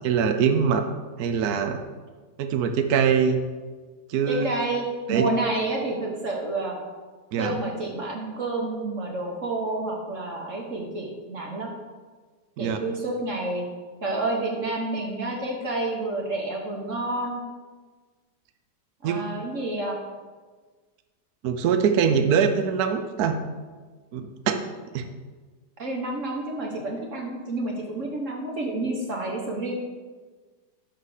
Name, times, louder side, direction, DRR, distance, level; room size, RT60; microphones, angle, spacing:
voice 1, 0.0-0.8 1.2-1.8 2.4-3.4 4.1-4.5 5.1-5.3 7.3-7.6 12.6-12.8 19.0-19.2 21.4-23.3 24.1-24.6 24.9-25.0, right 7 dB, 65° right, 7 dB, 1.2 m, -23 dB
voice 2, 4.3-6.8 7.4-11.7 12.6-13.6 14.0-17.4 19.0-20.0 25.8-29.7, right 2 dB, 50° right, 0 dB, 1.4 m, -29 dB
10.5 x 4.1 x 6.5 m, 1.4 s
omnidirectional pair, 1.8 m